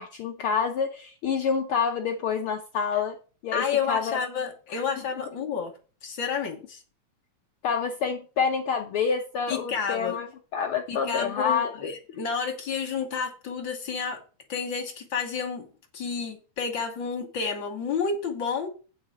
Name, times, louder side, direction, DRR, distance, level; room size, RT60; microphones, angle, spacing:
voice 1, 0.0-3.2 3.4-4.2 4.7-4.8 7.6-11.9, left 6 dB, 85° left, 4 dB, 1.2 m, -28 dB
voice 2, 3.5-5.7 6.0-6.8 9.5-10.1 10.9-14.2 14.5-15.7 15.9-18.7, left 6 dB, 60° left, 3 dB, 1.3 m, -30 dB
8.7 x 4.8 x 6.3 m, 0.36 s
omnidirectional pair, 3.5 m